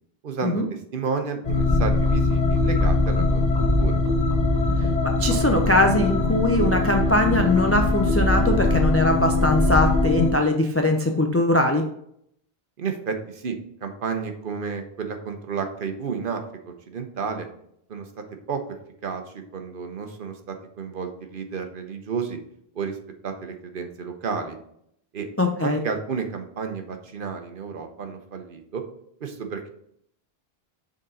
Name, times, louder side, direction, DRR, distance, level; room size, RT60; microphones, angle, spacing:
voice 1, 0.2-0.6 0.9-3.9 12.8-17.5 17.9-18.1 18.5-18.8 19.0-19.2 19.5-22.4 22.7-23.0 23.2-24.6 25.1-25.3 25.6-28.8 29.2-29.7, right 5 dB, 60° right, 5 dB, 1.0 m, -31 dB
sound 1, 1.4-10.3, left 2 dB, 40° left, 1.2 m, -21 dB
voice 2, 5.0-11.8 25.4-25.8, left 1 dB, 20° left, 3 dB, 0.3 m, -21 dB
6.6 x 4.0 x 3.7 m, 0.71 s
omnidirectional pair, 1.0 m